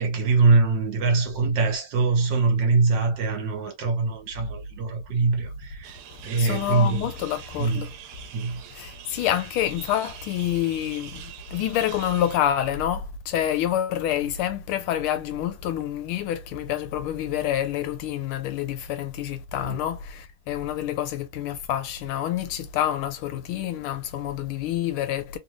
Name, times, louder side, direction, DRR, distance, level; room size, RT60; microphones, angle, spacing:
voice 1, 0.0-6.0 6.2-7.1 7.6-7.9 8.3-8.6 19.6-19.8, right 4 dB, 60° right, 1.7 m, -23 dB
sound 1, 5.8-12.4, right 10 dB, 90° right, 1.5 m, -44 dB
voice 2, 6.4-7.9 8.7-11.2 11.5-25.4, left 11 dB, 80° left, 1.4 m, -27 dB
3.5 x 2.6 x 2.9 m
omnidirectional pair, 2.3 m